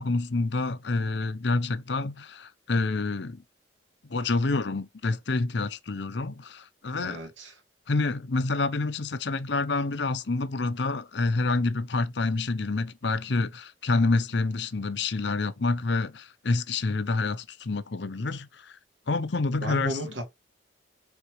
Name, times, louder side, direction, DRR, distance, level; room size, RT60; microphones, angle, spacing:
voice 1, 0.0-3.4 4.1-7.2 7.9-18.8 19.1-20.0, left 3 dB, 65° left, 0.7 m, -28 dB
voice 2, 7.0-7.6 19.6-20.2, right 1 dB, 75° right, 2.8 m, -34 dB
6.8 x 4.5 x 3.1 m
head